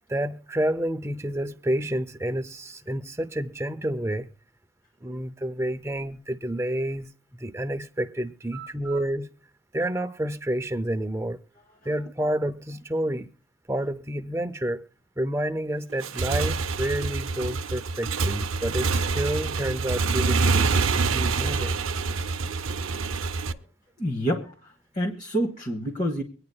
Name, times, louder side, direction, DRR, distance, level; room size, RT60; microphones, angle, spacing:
voice 1, 0.1-4.3 5.0-7.1 7.4-9.3 9.7-11.4 11.8-13.3 13.7-14.8 15.2-21.8, right 1 dB, 15° right, 0.6 m, -29 dB
voice 2, 8.5-9.0 23.5-23.6 24.0-26.2, equal, 35° left, 1.3 m, -29 dB
Motorcycle / Engine, 15.9-23.5, right 4 dB, 75° right, 0.6 m, -26 dB
24.5 x 9.6 x 2.3 m
head